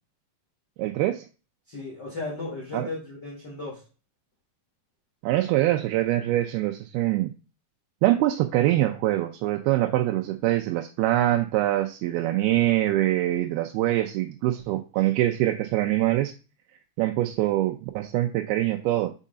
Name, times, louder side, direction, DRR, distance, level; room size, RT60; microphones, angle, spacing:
voice 1, 0.8-1.3 2.7-2.9 5.2-7.3 8.0-16.3 17.0-19.1, right 15 dB, 85° right, 5 dB, 2.5 m, -24 dB
voice 2, 1.7-3.8, left 2 dB, 55° left, -4 dB, 1.1 m, -35 dB
6.6 x 4.8 x 3.7 m, 0.33 s
omnidirectional pair, 4.5 m